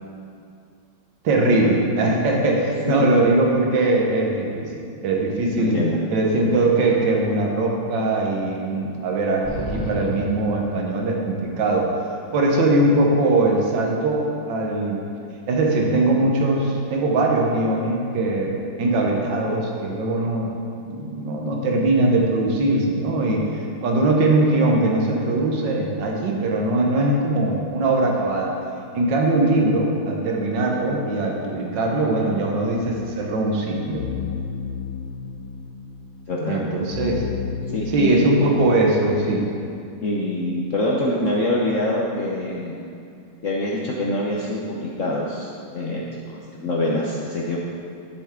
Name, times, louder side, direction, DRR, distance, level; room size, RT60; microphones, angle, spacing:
voice 1, 1.2-5.8 6.1-9.4 9.7-11.9 12.3-15.0 15.5-20.5 20.9-28.5 28.9-34.0 36.5-37.2 37.9-39.5, right 2 dB, 65° right, -1 dB, 1.8 m, -21 dB
voice 2, 5.6-6.0 36.3-36.6 37.7-38.2 40.0-42.8 43.4-47.6, left 1 dB, 55° left, -4 dB, 0.9 m, -25 dB
sound 1, 9.4-11.4, equal, 20° right, 1.8 m, -32 dB
sound 2, 32.8-38.5, left 7 dB, 85° left, 1.5 m, -33 dB
12.0 x 7.4 x 3.7 m, 2.5 s
omnidirectional pair, 2.1 m